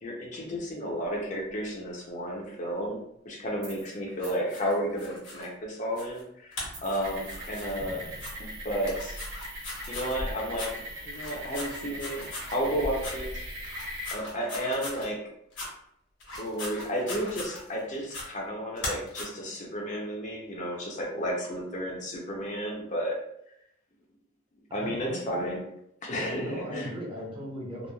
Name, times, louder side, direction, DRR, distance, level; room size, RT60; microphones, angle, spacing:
voice 1, 0.0-8.0 8.4-9.2 9.9-10.7 11.0-12.2 12.5-13.4 13.7-13.8 14.1-15.2 16.4-23.2 24.7-25.6 26.0-26.9, equal, 40° left, -1 dB, 0.5 m, -32 dB
sound 1, 3.6-3.9 4.2-4.4 6.6-7.5 7.8-8.7 10.0-10.3, right 2 dB, 60° right, 0.9 m, -47 dB
sound 2, 4.2-5.5 5.9-6.2 6.5-7.7 8.1-8.3 8.8-10.1 10.5-10.7 11.1-12.5 13.0-13.1 13.6-15.1 15.5-15.7 16.2-17.8 18.1-18.2 18.7-19.2, left 2 dB, 80° left, 1.1 m, -39 dB
sound 3, 7.0-14.1, equal, 90° right, 0.7 m, -39 dB
voice 2, 7.9-8.3 24.7-25.6 26.1-27.9, equal, 25° right, -4 dB, 0.7 m, -38 dB
3.0 x 2.2 x 2.2 m, 0.75 s
head